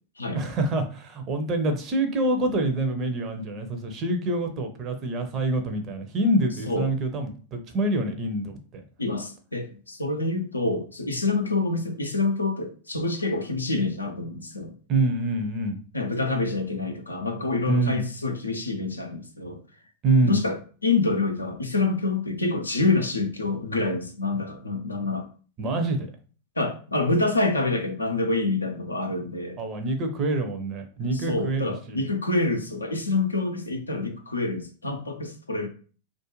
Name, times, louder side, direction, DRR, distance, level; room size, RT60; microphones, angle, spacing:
voice 1, 0.3-8.8 14.9-15.8 17.7-18.0 20.0-20.4 25.6-26.1 29.6-32.1, right 2 dB, 30° right, 0.6 m, -26 dB
voice 2, 9.0-14.7 15.9-19.6 20.2-25.3 26.6-29.6 31.1-35.7, left 3 dB, 80° left, 0.4 m, -27 dB
2.4 x 2.1 x 3.0 m
figure-of-eight pair, 90°, 0 cm